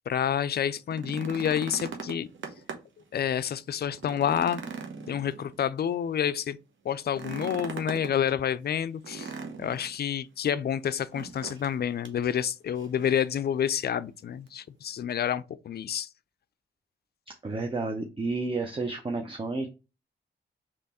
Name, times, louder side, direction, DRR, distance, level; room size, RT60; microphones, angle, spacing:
voice 1, 0.1-2.3 3.1-4.6 5.1-6.6 6.8-9.3 9.6-16.1, left 9 dB, 50° left, 0.4 m, -29 dB
sound 1, 0.8-3.0 3.4-3.5 3.9-5.8 7.1-8.1 9.0-10.0 11.1-11.8 12.0-12.2 12.8-13.3 14.5-14.6, right 5 dB, 70° right, 0.9 m, -40 dB
voice 2, 17.3-19.7, right 3 dB, 25° right, 0.7 m, -31 dB
3.4 x 3.0 x 4.1 m
cardioid pair, 65°, 21 cm